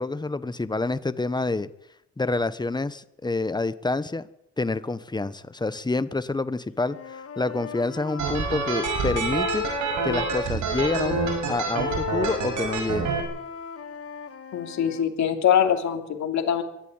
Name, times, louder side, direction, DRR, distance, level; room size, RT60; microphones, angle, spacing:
voice 1, 0.0-1.7 2.2-4.3 4.6-9.6 10.0-11.2 11.5-13.1, left 3 dB, 15° left, 14 dB, 1.2 m, -27 dB
Wind instrument woodwind instrument, 6.8-10.4 10.8-15.0, left 7 dB, 50° left, 2.3 m, -35 dB
sound 1, 8.2-13.2, right 4 dB, 80° right, 6.5 m, -27 dB
voice 2, 14.5-16.6, left 9 dB, 70° left, 4 dB, 3.1 m, -23 dB
23.0 x 12.5 x 9.6 m, 0.82 s
cardioid pair, 90°, 30 cm